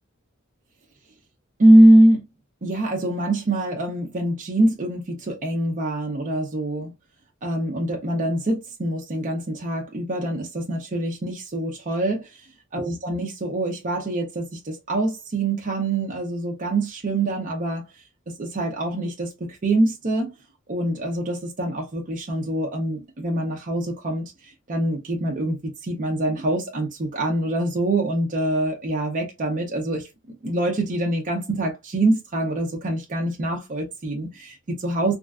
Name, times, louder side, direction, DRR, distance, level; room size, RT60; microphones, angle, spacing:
voice 1, 1.6-2.2 2.6-6.9 7.4-12.4 12.7-17.9 18.3-20.3 20.7-30.1 30.4-35.2, right 1 dB, 40° right, 0.6 m, -23 dB
3.2 x 2.4 x 2.3 m
head